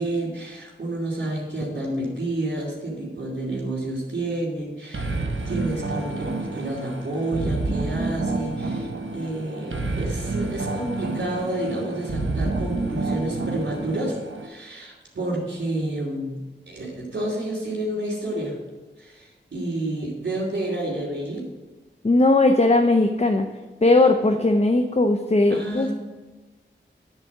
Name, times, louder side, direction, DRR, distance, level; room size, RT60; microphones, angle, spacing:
voice 1, 0.0-14.2 14.4-16.4 16.7-18.6 19.0-21.5 25.5-25.9, right 1 dB, 65° right, -8 dB, 3.1 m, -29 dB
sound 1, 4.9-14.5, right 3 dB, 80° right, 1.1 m, -29 dB
voice 2, 22.0-23.5 23.8-25.9, left 2 dB, 35° left, 5 dB, 0.7 m, -18 dB
10.5 x 4.1 x 7.3 m, 1.2 s
wide cardioid pair, 50°, 20 cm